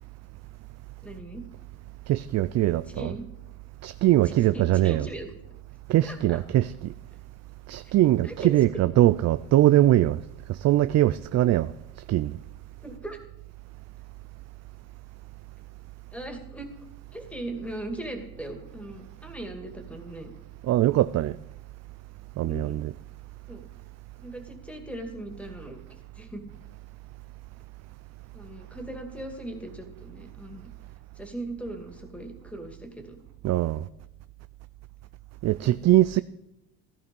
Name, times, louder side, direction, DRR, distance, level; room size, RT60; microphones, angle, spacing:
voice 1, 1.0-1.5 2.9-3.2 4.5-5.3 6.0-6.4 8.2-8.6 12.8-13.2 16.1-16.7 17.1-20.3 22.5-22.8 23.5-23.6 24.2-25.8 26.2-26.5 28.3-30.7 31.2-33.2 35.6-35.8, right 1 dB, 5° left, 2.4 m, -39 dB
voice 2, 2.1-3.2 3.8-5.1 5.9-6.9 7.7-10.2 10.5-11.7 12.1-12.4 20.6-21.4 22.4-22.9 33.4-33.9 35.4-36.2, right 14 dB, 45° right, 0.4 m, -22 dB
15.0 x 13.5 x 5.4 m
cardioid pair, 115°, 37 cm